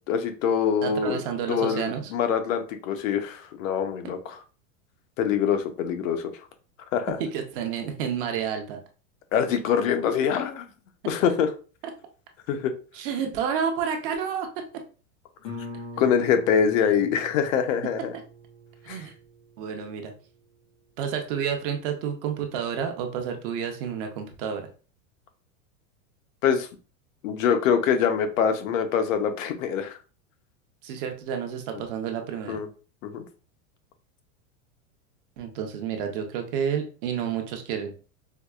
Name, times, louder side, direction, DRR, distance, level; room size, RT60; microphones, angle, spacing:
voice 1, 0.1-1.2 1.5-4.4 5.2-6.3 6.9-7.2 9.3-10.7 11.1-11.5 12.5-12.7 16.0-18.1 18.9-19.0 26.4-26.7 27.2-30.0 32.5-32.7 33.0-33.2, left 7 dB, 70° left, 8 dB, 0.7 m, -24 dB
voice 2, 0.8-2.1 7.2-8.8 12.9-14.6 18.8-19.1 19.6-20.1 21.0-24.7 30.8-32.6 35.4-37.9, right 7 dB, 40° right, 4 dB, 0.6 m, -30 dB
Guitar, 15.4-20.9, left 1 dB, 20° left, 0.3 m, -43 dB
4.6 x 2.3 x 2.3 m, 0.36 s
supercardioid pair, 160°, 41 cm